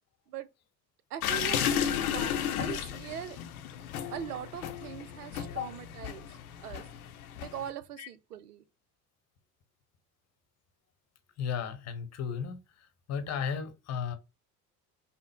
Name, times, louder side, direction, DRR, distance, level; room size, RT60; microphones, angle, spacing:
voice 1, 1.1-3.4 4.1-6.8 7.4-8.6, right 10 dB, 75° right, 0.6 m, -41 dB
sound 1, 1.2-7.7, left 9 dB, 70° left, 0.7 m, -33 dB
voice 2, 11.4-14.1, left 7 dB, 35° left, 1.0 m, -35 dB
5.5 x 2.1 x 3.5 m
figure-of-eight pair, 60°, 46 cm